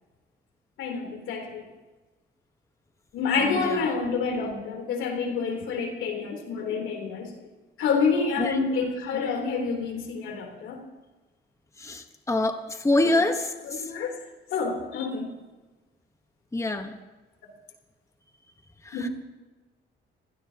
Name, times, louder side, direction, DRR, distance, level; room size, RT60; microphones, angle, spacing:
voice 1, 0.8-1.6 3.1-7.3 7.8-10.8 13.0-13.2 13.6-14.2 14.5-15.3 18.9-19.1, left 5 dB, 85° left, 2 dB, 3.5 m, -28 dB
voice 2, 11.8-12.6 12.8-13.5 16.5-17.0 18.9-19.0, left 2 dB, 15° left, 6 dB, 1.2 m, -24 dB
26.0 x 16.5 x 2.9 m, 1.2 s
cardioid pair, 90°, 20 cm